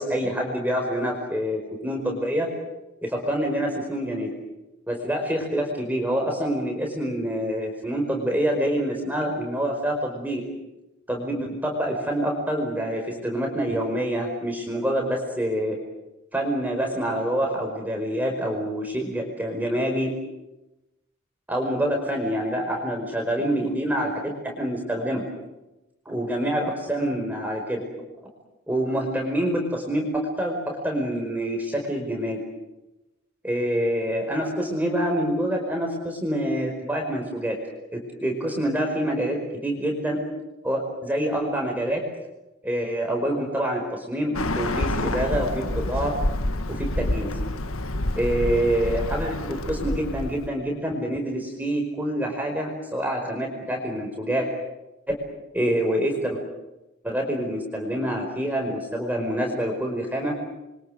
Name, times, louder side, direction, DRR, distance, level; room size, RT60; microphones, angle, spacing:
voice 1, 0.0-2.5 3.0-4.3 4.9-10.4 11.1-15.8 16.3-20.1 21.5-25.2 26.0-27.8 28.7-30.6 30.8-32.4 33.4-37.6 37.9-40.2 40.6-42.0 42.6-46.1 46.7-47.4 48.1-54.5 55.1-55.2 55.5-56.4 57.0-60.3, right 1 dB, 10° right, 1 dB, 5.1 m, -26 dB
Bird, 44.3-50.5, left 1 dB, 70° left, 1.8 m, -28 dB
29.5 x 24.0 x 7.8 m, 0.97 s
head